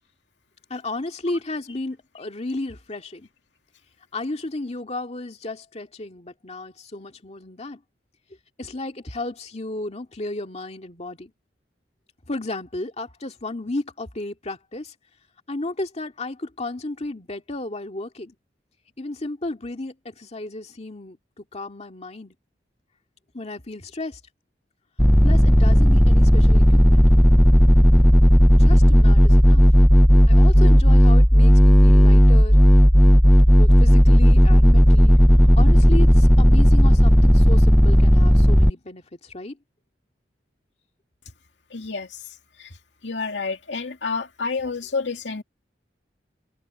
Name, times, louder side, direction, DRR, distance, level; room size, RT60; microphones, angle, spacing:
voice 1, 0.7-3.3 4.1-7.8 8.6-11.3 12.3-14.9 15.5-18.4 19.0-22.3 23.3-24.2 25.2-27.0 28.5-29.6 30.3-32.6 33.5-35.2 35.6-39.0 39.3-39.6, left 2 dB, 35° left, 2.2 m, -33 dB
sound 1, 25.0-38.7, equal, ahead, 0.4 m, -13 dB
voice 2, 41.7-42.2 42.6-42.7 43.0-45.4, left 4 dB, 90° left, 2.2 m, -29 dB
head